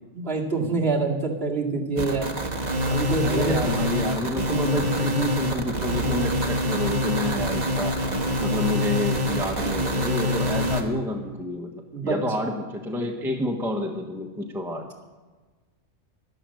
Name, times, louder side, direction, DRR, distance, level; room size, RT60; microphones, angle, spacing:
voice 1, 0.1-2.3 2.9-3.6 11.9-12.1, right 3 dB, 50° right, -3 dB, 2.6 m, -26 dB
sound 1, 2.0-10.8, equal, 35° right, 1.5 m, -25 dB
voice 2, 3.2-8.0 8.4-14.9, left 1 dB, ahead, 2 dB, 1.2 m, -29 dB
12.0 x 12.0 x 7.7 m, 1.3 s
omnidirectional pair, 1.3 m